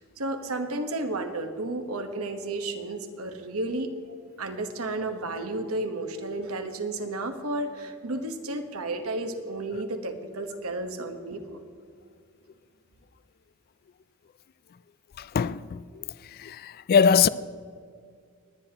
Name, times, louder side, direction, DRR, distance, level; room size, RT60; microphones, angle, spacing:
voice 1, 0.2-11.6, right 2 dB, 75° right, 1.1 m, -32 dB
voice 2, 15.2-15.8 16.4-17.3, left 6 dB, 45° left, 0.3 m, -22 dB
20.5 x 9.9 x 2.9 m
head